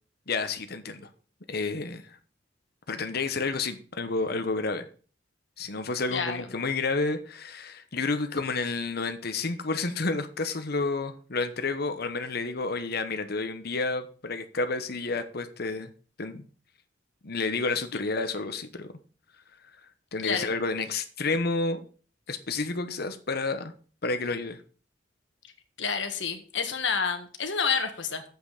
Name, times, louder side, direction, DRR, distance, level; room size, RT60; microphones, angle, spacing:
voice 1, 0.3-1.1 1.5-2.2 2.9-4.9 5.6-15.9 16.2-16.4 17.2-18.9 20.1-21.8 22.3-23.7 24.0-24.6, left 3 dB, 60° left, 8 dB, 1.1 m, -30 dB
voice 2, 6.1-6.5 17.9-18.0 20.2-20.5 25.8-28.2, left 5 dB, 80° left, 7 dB, 1.5 m, -29 dB
7.7 x 5.9 x 6.6 m, 0.41 s
head